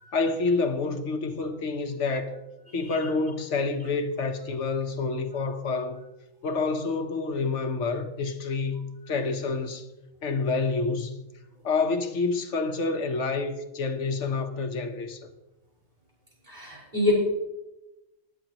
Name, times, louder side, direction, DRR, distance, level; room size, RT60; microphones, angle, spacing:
voice 1, 0.1-2.3 2.7-6.0 6.4-9.9 10.2-11.1 11.6-15.3, left 4 dB, 65° left, 1.3 m, -28 dB
voice 2, 16.5-17.1, left 3 dB, 35° right, 4.4 m, -27 dB
16.0 x 11.0 x 3.0 m
omnidirectional pair, 1.3 m